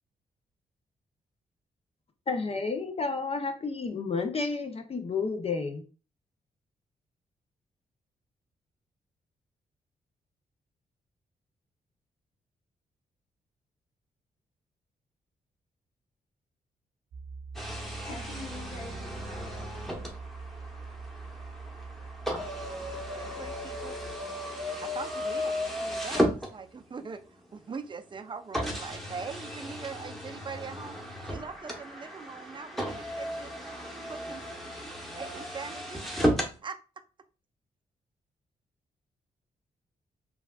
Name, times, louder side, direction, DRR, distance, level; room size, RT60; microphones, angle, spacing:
voice 1, 2.3-5.8, left 4 dB, 40° left, 6 dB, 0.5 m, -31 dB
sound 1, 17.1-24.2, right 4 dB, 70° right, 0.8 m, -43 dB
sound 2, 17.5-27.0 27.7-27.8 28.5-36.6, equal, ahead, 0.9 m, -34 dB
voice 2, 17.6-20.2, left 3 dB, 85° left, -1 dB, 0.9 m, -46 dB
voice 3, 22.8-24.0 24.8-27.2 27.5-31.0 31.2-33.5 34.1-34.4 35.2-36.0 36.6-36.8, right 5 dB, 30° right, 9 dB, 0.4 m, -42 dB
3.3 x 2.3 x 2.2 m, 0.34 s
supercardioid pair, 45°, 16 cm